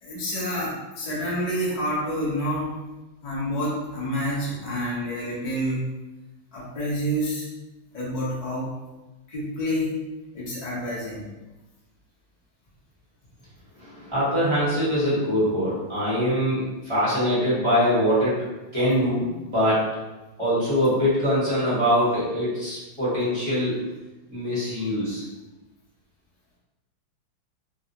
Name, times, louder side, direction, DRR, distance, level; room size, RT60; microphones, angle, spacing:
voice 1, 0.0-2.8 3.2-5.8 6.5-7.5 7.9-8.7 9.3-10.0 10.3-11.2, equal, 35° left, -7 dB, 0.6 m, -28 dB
voice 2, 13.7-18.4 18.7-19.9 20.4-23.8 24.3-25.2, equal, 20° right, -12 dB, 1.0 m, -23 dB
3.0 x 2.6 x 2.8 m, 1.1 s
omnidirectional pair, 2.2 m